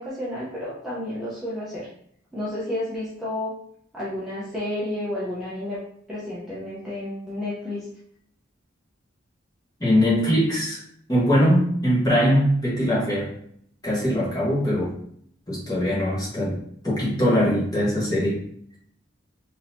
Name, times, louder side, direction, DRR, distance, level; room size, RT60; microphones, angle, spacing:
voice 1, 0.0-1.9 2.3-3.6 3.9-5.8 6.1-7.9, left 1 dB, ahead, -10 dB, 0.7 m, -31 dB
voice 2, 9.8-10.8 11.1-13.3 13.8-15.0 15.5-16.6 16.8-18.4, equal, 20° left, -7 dB, 1.2 m, -21 dB
3.8 x 2.8 x 2.6 m, 0.67 s
head